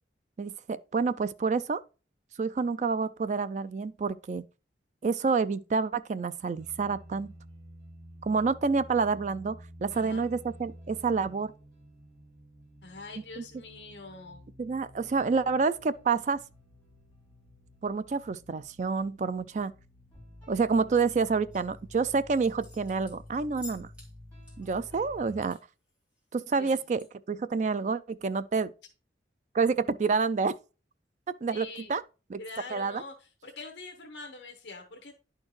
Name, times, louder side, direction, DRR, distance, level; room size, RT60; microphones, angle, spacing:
voice 1, 0.4-1.8 2.4-4.4 5.0-7.3 8.2-11.5 13.4-13.5 14.6-16.4 17.8-19.7 20.5-23.9 24.6-25.6 26.3-28.7 29.5-30.5 31.4-32.0 32.3-32.4 32.7-33.0, right 4 dB, 40° right, 0.3 m, -28 dB
sound 1, 6.5-25.4, equal, 10° left, 3.5 m, -51 dB
voice 2, 9.9-10.3 12.8-14.4 26.6-26.8 31.5-31.9 32.4-35.1, left 3 dB, 70° left, 0.9 m, -44 dB
sound 2, 21.5-21.8 22.3-24.1 24.4-25.6 25.9-26.0 26.3-27.1, left 3 dB, 5° right, 2.1 m, -50 dB
10.5 x 4.4 x 3.1 m
head